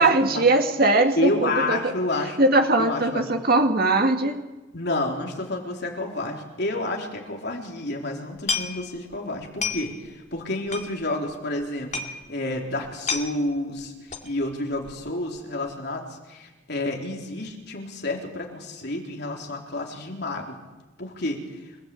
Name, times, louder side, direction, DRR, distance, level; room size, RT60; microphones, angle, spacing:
voice 1, 0.0-1.9 2.4-4.4, right 2 dB, 50° right, 4 dB, 2.2 m, -20 dB
voice 2, 1.2-2.4 2.8-3.3 4.7-12.0 12.3-13.9 14.2-20.6 21.0-21.4, left 2 dB, 55° left, 1 dB, 3.8 m, -29 dB
sound 1, 8.5-9.1 9.4-10.1 10.4-10.5 10.7-11.3 11.6-11.7 11.9-12.2 12.6-12.7 12.8-13.3 14.1-14.4 14.7-15.1 15.4-15.5, left 4 dB, 35° left, 2.3 m, -30 dB
28.5 x 17.0 x 8.5 m, 1.1 s
head